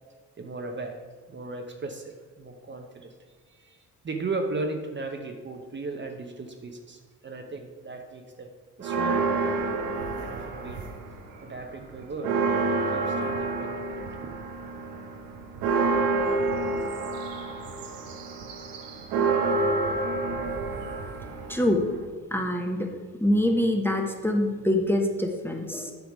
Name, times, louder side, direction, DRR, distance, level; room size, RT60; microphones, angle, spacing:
voice 1, 0.4-3.1 3.5-8.5 8.8-9.3 10.2-10.8 11.4-14.4, right 3 dB, 35° right, 4 dB, 1.0 m, -37 dB
sound 1, 8.8-11.2 11.6-22.0, right 3 dB, 80° right, 0.9 m, -28 dB
voice 2, 21.5-21.8 22.3-22.9 23.2-25.9, left 1 dB, 5° left, 3 dB, 1.2 m, -25 dB
8.2 x 5.0 x 4.9 m, 1.4 s
supercardioid pair, 65°, 34 cm